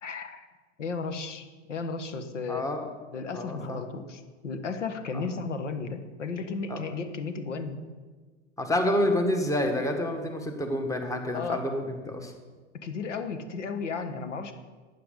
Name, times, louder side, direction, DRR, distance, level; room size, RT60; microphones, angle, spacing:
voice 1, 0.0-0.5 0.8-2.7 3.1-7.8 11.3-11.6 12.8-14.5, left 4 dB, 90° left, 9 dB, 1.2 m, -34 dB
voice 2, 2.5-2.8 3.3-3.8 5.1-5.2 6.7-6.8 8.6-12.3, left 1 dB, 10° left, 5 dB, 1.5 m, -28 dB
11.5 x 9.0 x 5.1 m, 1.4 s
hypercardioid pair, 100°, 35 cm